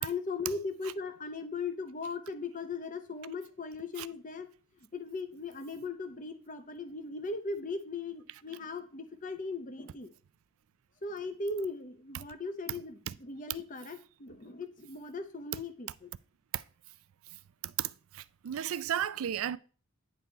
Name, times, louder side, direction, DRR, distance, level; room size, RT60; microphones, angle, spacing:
voice 1, 0.0-4.5 4.8-10.1 11.0-16.1, left 3 dB, 35° left, 0.7 m, -38 dB
voice 2, 17.6-19.6, right 10 dB, 75° right, 0.4 m, -34 dB
9.5 x 4.0 x 4.5 m
head